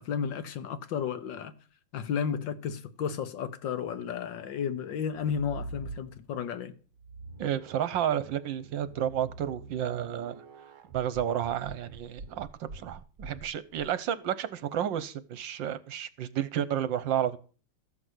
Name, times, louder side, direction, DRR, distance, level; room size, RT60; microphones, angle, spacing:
voice 1, 0.0-1.5 1.9-6.7, left 7 dB, 65° left, 1.5 m, -33 dB
sound 1, 5.0-6.4 6.9-13.9, right 3 dB, 50° right, 1.0 m, -45 dB
voice 2, 7.4-10.4 10.9-17.4, right 10 dB, 70° right, 1.4 m, -31 dB
14.0 x 6.1 x 8.0 m
omnidirectional pair, 2.3 m